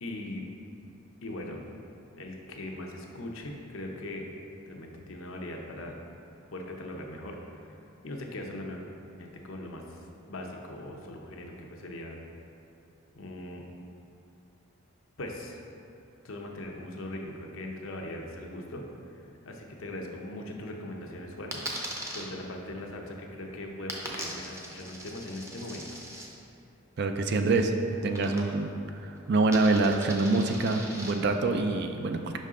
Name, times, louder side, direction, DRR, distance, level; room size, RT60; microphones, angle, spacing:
voice 1, 0.0-0.4 1.2-1.6 2.1-4.3 4.7-6.0 6.5-7.4 8.0-8.8 9.2-9.8 10.3-12.2 13.2-13.6 15.2-15.6 16.2-18.8 19.4-21.6 22.1-25.8, left 1 dB, 80° left, 1 dB, 0.7 m, -40 dB
Coin (dropping), 21.5-22.2 23.9-26.3 28.1-28.8 29.0-31.1, right 1 dB, 15° right, 0.6 m, -40 dB
voice 2, 27.0-27.7 28.0-28.7 29.3-32.4, right 3 dB, 55° right, 6 dB, 0.4 m, -25 dB
5.5 x 5.4 x 3.7 m, 2.7 s
head